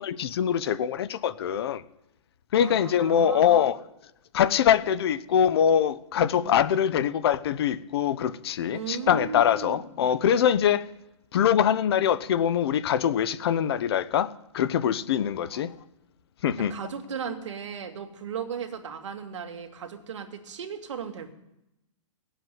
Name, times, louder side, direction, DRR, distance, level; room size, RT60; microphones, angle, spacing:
voice 1, 0.0-1.8 2.5-3.8 4.3-10.9 11.3-15.7 16.4-16.7, left 9 dB, 50° left, 0.9 m, -23 dB
voice 2, 2.6-3.6 6.4-6.6 8.7-9.8 15.4-15.6 16.6-21.3, right 7 dB, 65° right, 2.4 m, -36 dB
18.0 x 8.1 x 9.3 m
hypercardioid pair, 160°, 17 cm